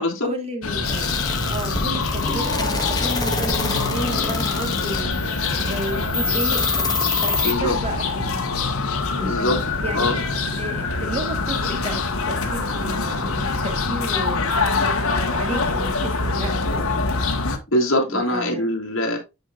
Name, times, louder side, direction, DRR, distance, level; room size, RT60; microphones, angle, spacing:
voice 1, 0.2-8.6 9.2-9.4 9.8-10.1 10.6-14.4 15.1-17.1 18.1-18.7, right 1 dB, 30° right, 1.5 m, -32 dB
sound 1, 0.6-17.6, left 3 dB, 85° left, 1.4 m, -24 dB
sound 2, 0.8-7.5, left 3 dB, 20° left, 1.3 m, -27 dB
voice 2, 7.4-7.7 9.2-9.6 9.9-10.2 17.7-19.2, left 1 dB, 65° left, 2.6 m, -22 dB
9.9 x 5.3 x 2.5 m
head